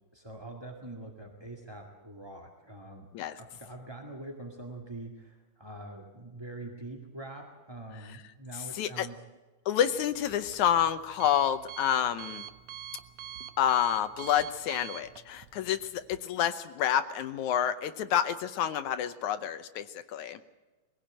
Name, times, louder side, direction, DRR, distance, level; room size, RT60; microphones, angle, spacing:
voice 1, 0.1-9.2, right 2 dB, 15° right, 1 dB, 1.0 m, -44 dB
voice 2, 8.8-9.1 9.7-12.5 13.6-20.4, left 10 dB, 70° left, 11 dB, 1.9 m, -28 dB
Alarm, 9.8-16.2, right 10 dB, 70° right, 1.8 m, -45 dB
23.0 x 16.5 x 8.9 m, 1.2 s
omnidirectional pair, 4.1 m